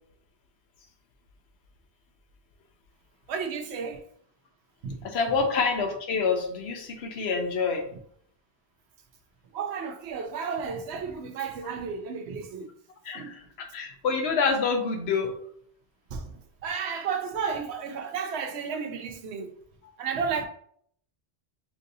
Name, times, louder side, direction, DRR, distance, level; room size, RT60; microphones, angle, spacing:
voice 1, 3.3-4.0 4.8-5.0 9.5-12.7 13.1-13.4 16.1-19.5 20.0-20.5, right 6 dB, 90° right, 0.9 m, -32 dB
voice 2, 5.0-7.9 13.0-15.4, left 5 dB, 80° left, 1.0 m, -27 dB
5.5 x 2.6 x 2.6 m
omnidirectional pair, 1.1 m